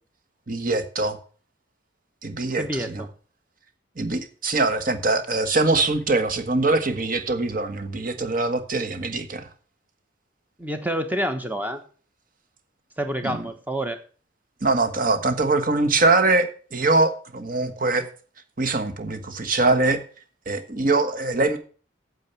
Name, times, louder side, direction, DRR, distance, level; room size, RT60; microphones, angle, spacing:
voice 1, 0.5-1.2 2.2-3.0 4.0-9.5 13.2-13.4 14.6-18.1 18.6-20.0 20.5-21.6, right 3 dB, 45° right, 9 dB, 1.4 m, -23 dB
voice 2, 2.6-3.1 10.6-11.8 13.0-14.0, equal, 10° right, 7 dB, 1.3 m, -28 dB
9.0 x 7.5 x 6.9 m, 0.41 s
head